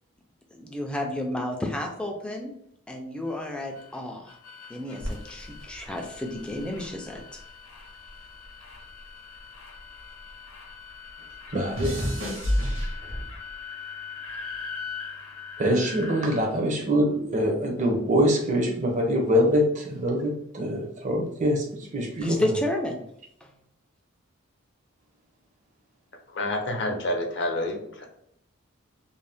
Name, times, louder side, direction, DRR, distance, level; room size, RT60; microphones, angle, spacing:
voice 1, 0.5-2.5 2.9-4.4 4.7-7.4 22.2-23.0 23.4-23.5, left 1 dB, 5° left, 1 dB, 0.3 m, -31 dB
sound 1, 3.3-16.4, left 5 dB, 90° left, 0.7 m, -42 dB
sound 2, 5.0-7.5 7.8-10.4 10.7-13.5 14.3-14.6, equal, 60° right, 0.9 m, -32 dB
voice 2, 11.5-12.0 15.6-22.4, equal, 35° right, 1 dB, 0.6 m, -24 dB
voice 3, 26.3-28.1, left 1 dB, 55° left, 2 dB, 0.6 m, -28 dB
2.6 x 2.1 x 3.3 m, 0.72 s
head